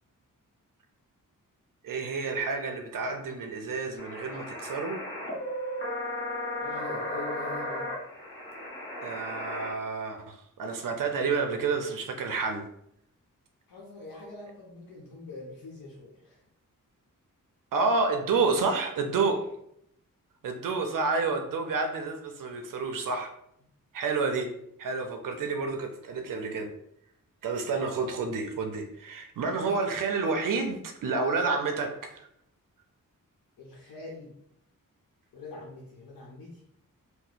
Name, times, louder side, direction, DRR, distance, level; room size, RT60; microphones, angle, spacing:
voice 1, 1.8-5.0 9.0-12.6 17.7-19.4 20.4-23.3 23.9-24.5 24.8-26.7 27.4-32.2, right 4 dB, 70° right, 5 dB, 0.5 m, -29 dB
sound 1, 4.0-9.7, left 1 dB, 35° left, 0.9 m, -35 dB
voice 2, 6.6-7.9 13.7-16.4 19.3-19.4 33.6-34.3 35.3-36.6, left 3 dB, 85° left, -4 dB, 0.8 m, -43 dB
2.8 x 2.0 x 4.0 m, 0.74 s
wide cardioid pair, 110°, 33 cm